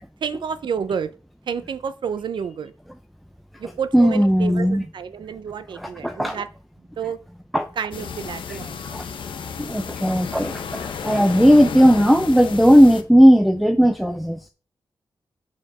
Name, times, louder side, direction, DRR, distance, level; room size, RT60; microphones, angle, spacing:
voice 1, 0.2-1.1 1.5-2.7 3.6-6.5 7.0-7.2 7.8-8.8, right 7 dB, 70° right, 0.6 m, -29 dB
voice 2, 3.9-4.8 5.7-6.4 7.5-7.7 8.5-8.6 8.8-9.1 9.6-14.5, equal, ahead, 0.5 m, -16 dB
sound 1, 7.9-13.0, left 6 dB, 85° left, 0.8 m, -32 dB
7.1 x 4.4 x 6.0 m
wide cardioid pair, 125°, 8 cm